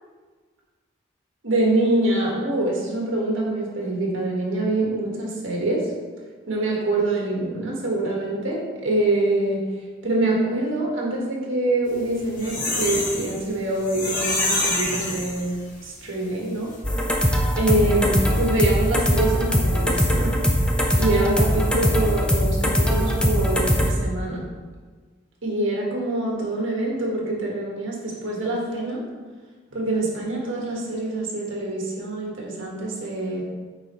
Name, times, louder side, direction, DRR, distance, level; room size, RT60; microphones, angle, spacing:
voice 1, 1.4-5.9 6.5-9.7 10.0-16.7 17.6-20.4 21.0-24.5 25.4-29.0 29.7-33.4, right 2 dB, 80° right, -3 dB, 1.7 m, -25 dB
sound 1, 12.0-15.8 16.2-16.3 16.6-16.7, left 2 dB, 40° left, 1.7 m, -26 dB
sound 2, 16.8-23.9, equal, 5° left, 0.5 m, -21 dB
8.8 x 4.3 x 3.1 m, 1.4 s
head